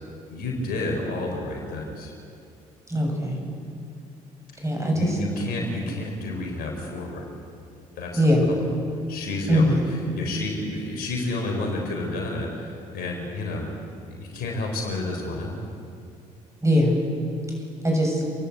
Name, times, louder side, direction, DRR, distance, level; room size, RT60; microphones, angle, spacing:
voice 1, 0.3-2.1 4.5-4.6 4.9-7.3 8.0-8.7 9.1-13.7 14.0-15.6, left 2 dB, 70° left, 1 dB, 4.3 m, -30 dB
voice 2, 2.9-3.4 4.6-5.1 8.2-8.5 9.5-9.8 16.6-17.0 17.8-18.2, equal, 20° right, 1 dB, 7.1 m, -21 dB
28.5 x 11.0 x 8.4 m, 2.5 s
hypercardioid pair, 60°, 16 cm